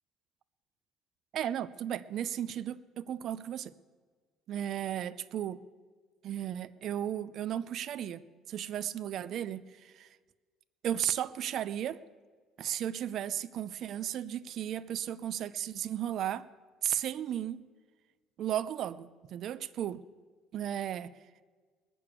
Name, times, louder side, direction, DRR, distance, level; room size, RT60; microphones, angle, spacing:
voice 1, 1.3-3.7 4.5-5.6 6.2-10.1 10.8-12.0 12.6-16.5 16.8-17.6 18.4-20.0 20.5-21.2, right 10 dB, 55° right, 16 dB, 0.5 m, -35 dB
20.0 x 7.0 x 8.3 m, 1.5 s
cardioid pair, 125°, 0 cm